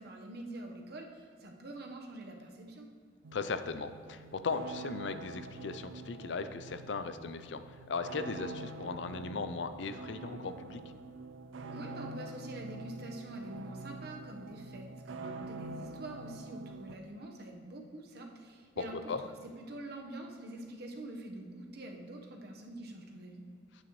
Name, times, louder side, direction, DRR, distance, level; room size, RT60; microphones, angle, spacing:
voice 1, 0.0-2.9 11.7-19.0 19.2-23.5, right 1 dB, 55° right, 1 dB, 1.1 m, -45 dB
sound 1, 3.2-16.9, right 3 dB, 75° right, 0.4 m, -46 dB
voice 2, 3.3-10.8 19.1-19.2, left 4 dB, 65° left, 10 dB, 0.5 m, -37 dB
9.7 x 8.7 x 3.1 m, 2.2 s
head